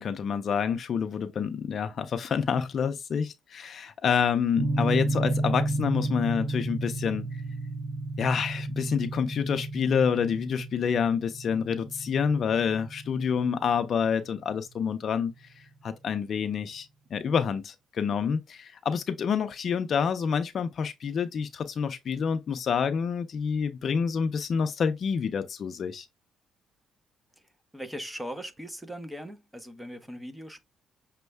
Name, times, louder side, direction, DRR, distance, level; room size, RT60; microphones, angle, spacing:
voice 1, 0.0-7.3 8.2-26.1, left 6 dB, 50° left, 0.5 m, -28 dB
sound 1, 4.6-14.7, right 2 dB, 60° right, 0.7 m, -32 dB
voice 2, 27.7-30.6, equal, 5° right, 0.7 m, -39 dB
6.2 x 2.2 x 3.3 m
cardioid pair, 125°, 0 cm